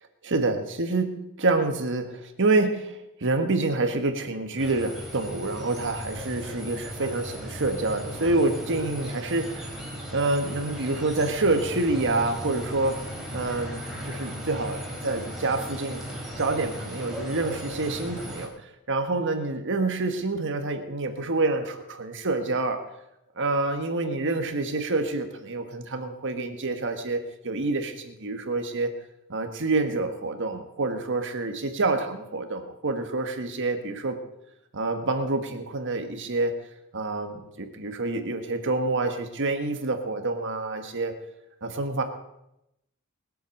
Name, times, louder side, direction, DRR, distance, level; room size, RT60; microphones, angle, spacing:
voice 1, 0.2-9.7 10.1-13.0 13.3-16.1 16.4-22.8 23.4-29.0 29.3-34.2 34.7-36.6 36.9-41.1 41.6-42.0, right 2 dB, 55° right, 6 dB, 1.5 m, -27 dB
sound 1, 4.6-18.5, equal, ahead, 3.5 m, -37 dB
21.0 x 7.8 x 6.6 m, 0.84 s
head